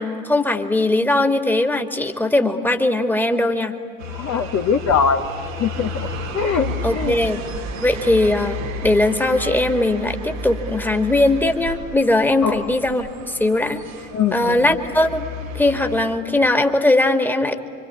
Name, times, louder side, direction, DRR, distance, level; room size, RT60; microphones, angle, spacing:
voice 1, 0.0-3.7 6.8-7.4 7.8-13.8 14.3-15.2 15.5-17.6, left 2 dB, 5° left, 5 dB, 2.1 m, -19 dB
sound 1, 4.0-16.2, equal, 80° right, 2.1 m, -32 dB
voice 2, 4.2-5.3 5.6-6.1 6.3-7.1 12.4-12.6 14.1-14.7, left 6 dB, 45° left, 3 dB, 1.4 m, -21 dB
26.5 x 25.5 x 8.6 m, 2.4 s
figure-of-eight pair, 55°, 39 cm